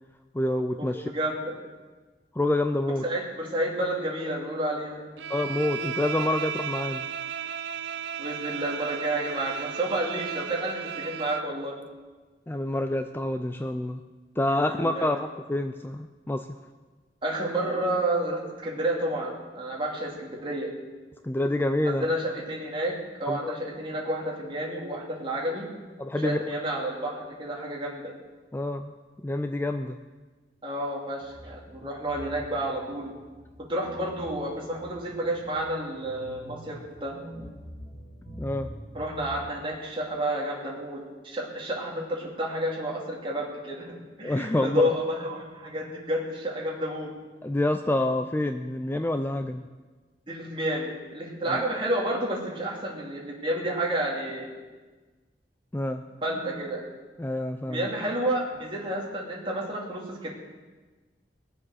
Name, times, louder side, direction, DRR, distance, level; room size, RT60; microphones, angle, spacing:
voice 1, 0.3-1.1 2.3-3.0 5.3-7.1 12.5-14.0 14.4-16.5 21.2-22.1 23.3-23.5 26.0-26.4 28.5-28.9 29.2-30.0 38.4-38.7 44.2-44.8 47.4-49.6 51.5-51.6 55.7-56.0 57.2-57.9, left 1 dB, 10° left, 8 dB, 0.4 m, -27 dB
voice 2, 1.1-1.5 3.0-5.1 8.2-11.7 14.5-15.1 17.2-20.7 21.8-22.9 23.2-25.7 26.2-28.1 30.6-33.1 33.7-37.1 38.9-47.1 50.3-54.5 56.2-56.8 57.7-60.3, right 1 dB, 30° right, -3 dB, 2.9 m, -30 dB
Bowed string instrument, 5.2-11.5, right 8 dB, 85° right, 0.6 m, -34 dB
sound 1, 31.2-39.5, equal, 75° left, 5.1 m, -45 dB
20.0 x 7.4 x 6.4 m, 1.3 s
head